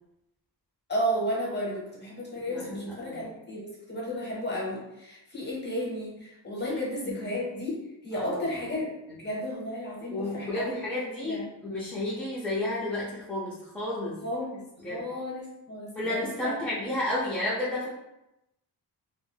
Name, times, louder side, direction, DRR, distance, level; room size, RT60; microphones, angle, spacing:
voice 1, 0.9-10.8 11.2-11.5 14.2-16.5, equal, 25° left, -4 dB, 0.8 m, -33 dB
voice 2, 2.5-3.2 6.6-6.8 7.1-7.2 8.2-8.4 10.1-14.2 14.8-15.0 16.0-17.9, left 1 dB, 5° left, -9 dB, 0.4 m, -32 dB
2.4 x 2.2 x 3.3 m, 0.89 s
wide cardioid pair, 165°, 43 cm